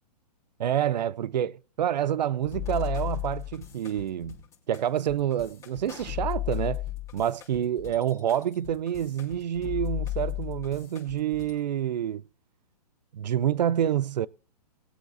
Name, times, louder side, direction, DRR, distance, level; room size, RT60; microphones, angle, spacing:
voice 1, 0.6-4.4 4.7-6.8 7.1-12.2 13.1-14.3, right 10 dB, 85° right, 0.4 m, -28 dB
sound 1, 2.4-11.6, left 15 dB, 15° left, 3.1 m, -35 dB
21.0 x 8.1 x 2.6 m
hypercardioid pair, 155°, 21 cm